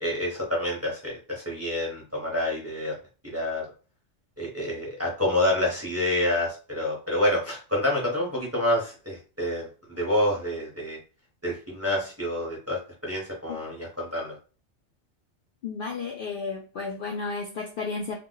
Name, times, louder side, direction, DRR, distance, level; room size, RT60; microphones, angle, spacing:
voice 1, 0.0-3.0 3.2-3.7 4.4-11.0 11.4-14.4, left 1 dB, 15° right, -3 dB, 0.7 m, -28 dB
voice 2, 15.6-18.2, left 4 dB, 60° left, -1 dB, 0.6 m, -33 dB
2.3 x 2.1 x 3.7 m, 0.35 s
omnidirectional pair, 1.2 m